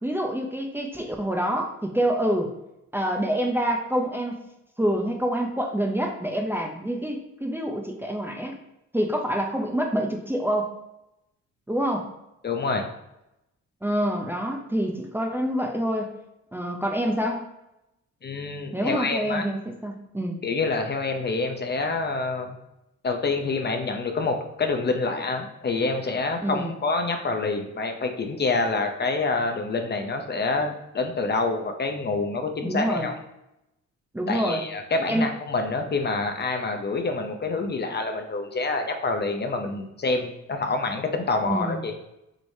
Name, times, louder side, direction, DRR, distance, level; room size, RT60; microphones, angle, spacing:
voice 1, 0.0-2.5 2.9-4.4 4.8-8.6 8.9-10.7 11.7-12.1 13.8-16.1 16.5-17.5 18.7-20.4 26.4-26.7 32.6-33.1 34.1-34.6 35.1-35.3 41.5-41.8, right 1 dB, 5° right, 1 dB, 0.6 m, -26 dB
voice 2, 12.4-12.9 18.2-19.4 20.4-22.6 23.0-33.1 34.3-41.9, left 3 dB, 35° left, 5 dB, 0.6 m, -27 dB
6.3 x 3.1 x 2.7 m, 0.89 s
cardioid pair, 90°, 30 cm